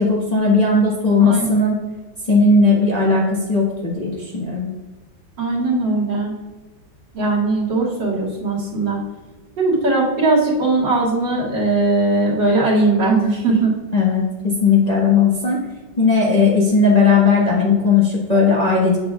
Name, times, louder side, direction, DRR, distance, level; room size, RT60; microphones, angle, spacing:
voice 1, 0.0-1.8 2.3-4.7 13.9-15.6 16.0-19.0, left 4 dB, 25° left, -5 dB, 1.2 m, -16 dB
voice 2, 5.4-6.3 7.1-9.0 9.6-13.8, right 2 dB, 70° right, -6 dB, 3.0 m, -19 dB
8.1 x 7.6 x 2.3 m, 1.3 s
omnidirectional pair, 2.1 m